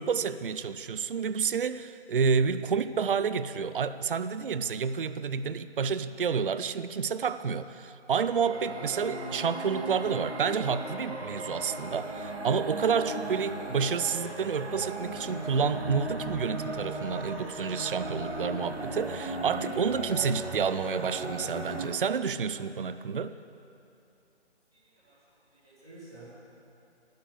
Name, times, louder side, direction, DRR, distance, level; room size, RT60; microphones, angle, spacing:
voice 1, 0.0-23.4, right 6 dB, 50° right, 13 dB, 0.5 m, -29 dB
sound 1, 8.2-21.9, right 1 dB, 65° right, 2.5 m, -37 dB
voice 2, 24.7-25.2 25.4-26.2, right 2 dB, 5° right, -12 dB, 0.6 m, -52 dB
12.0 x 10.5 x 8.0 m, 2.7 s
figure-of-eight pair, 160°, 35 cm